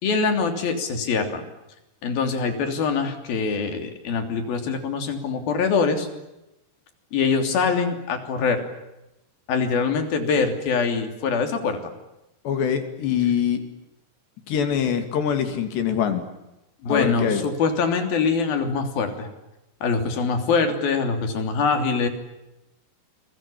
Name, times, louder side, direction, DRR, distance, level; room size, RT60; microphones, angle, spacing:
voice 1, 0.0-1.4 2.0-6.1 7.1-8.6 9.5-11.8 16.8-19.3 19.8-22.1, left 5 dB, 60° left, 6 dB, 4.9 m, -23 dB
voice 2, 12.4-13.6 14.5-16.2 16.9-17.4, left 8 dB, 80° left, 7 dB, 4.9 m, -24 dB
29.0 x 22.5 x 8.6 m, 0.93 s
omnidirectional pair, 4.9 m